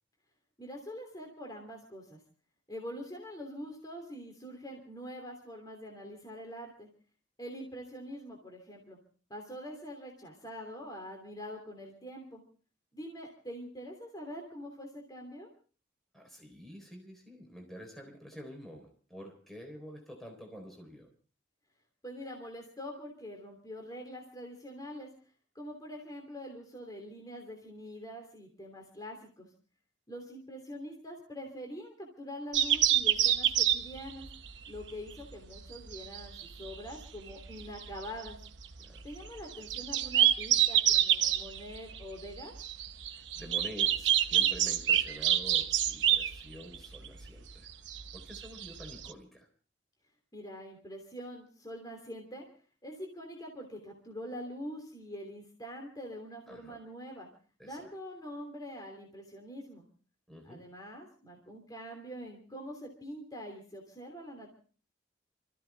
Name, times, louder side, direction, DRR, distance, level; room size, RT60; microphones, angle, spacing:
voice 1, 0.6-2.2 2.7-6.9 7.4-9.0 9.3-12.4 12.9-15.5 22.0-25.1 25.5-29.5 30.1-34.3 34.7-38.4 39.0-42.5 50.3-52.5 52.8-57.3 57.6-59.8 60.4-64.5, equal, 20° left, 1 dB, 3.1 m, -44 dB
voice 2, 16.1-21.1 38.8-39.1 43.4-47.7 48.1-49.5 56.5-56.8 57.6-57.9 60.3-60.6, equal, ahead, 2 dB, 3.8 m, -48 dB
sound 1, 32.5-49.1, right 11 dB, 80° right, 1.0 m, -28 dB
27.0 x 14.5 x 3.5 m, 0.38 s
head